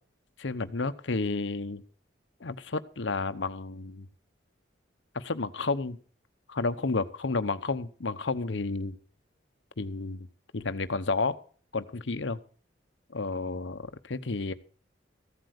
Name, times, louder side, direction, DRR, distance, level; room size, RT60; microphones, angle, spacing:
voice 1, 0.4-1.8 2.4-4.1 5.1-6.0 6.5-9.0 9.8-10.3 10.5-11.4 11.7-12.4 13.1-14.5, left 3 dB, 75° left, 12 dB, 0.9 m, -31 dB
15.0 x 7.9 x 6.5 m, 0.42 s
head